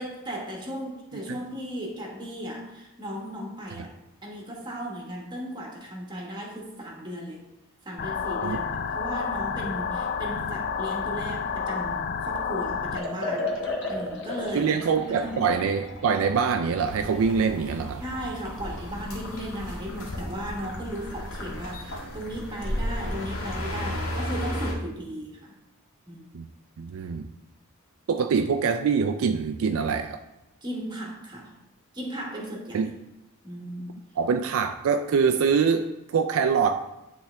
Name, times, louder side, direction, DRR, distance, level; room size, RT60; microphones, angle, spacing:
voice 1, 0.0-3.9 4.2-7.4 7.8-13.5 13.9-15.5 18.0-25.6 26.1-26.3 30.6-31.5 31.9-32.9 33.4-34.0, equal, 20° right, -1 dB, 1.3 m, -36 dB
sound 1, 8.0-13.0, left 6 dB, 45° left, 0.4 m, -30 dB
Liquid, 12.9-24.1, left 2 dB, 60° left, 1.2 m, -38 dB
voice 2, 14.5-18.0 26.3-26.5 26.8-27.3 28.1-30.2 32.7-32.9 34.2-36.8, right 6 dB, 70° right, 7 dB, 0.4 m, -24 dB
sound 2, 16.8-24.7, left 1 dB, 85° left, 1.8 m, -34 dB
9.9 x 3.5 x 3.3 m, 0.93 s
head